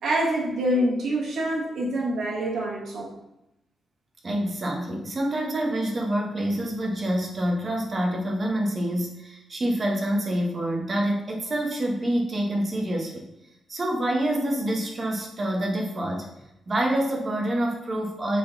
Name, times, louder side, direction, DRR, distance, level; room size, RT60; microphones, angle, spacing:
voice 1, 0.0-3.2, right 1 dB, 70° right, -3 dB, 1.8 m, -26 dB
voice 2, 4.2-13.3 13.7-16.3 16.7-18.4, right 1 dB, 30° right, 0 dB, 1.2 m, -27 dB
6.5 x 3.9 x 4.0 m, 0.88 s
wide cardioid pair, 145°, 0 cm